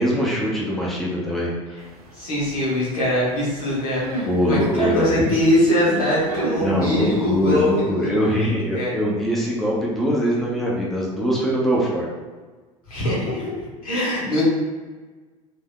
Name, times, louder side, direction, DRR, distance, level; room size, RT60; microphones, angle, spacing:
voice 1, 0.0-1.5 4.2-5.1 6.6-12.1, equal, ahead, -5 dB, 0.8 m, -22 dB
sound 1, 1.8-7.8, right 1 dB, 85° right, 0.5 m, -36 dB
voice 2, 2.1-8.9 12.9-13.6 13.8-14.4, left 1 dB, 75° left, -7 dB, 1.3 m, -22 dB
3.4 x 2.7 x 2.3 m, 1.4 s
figure-of-eight pair, 70°, 19 cm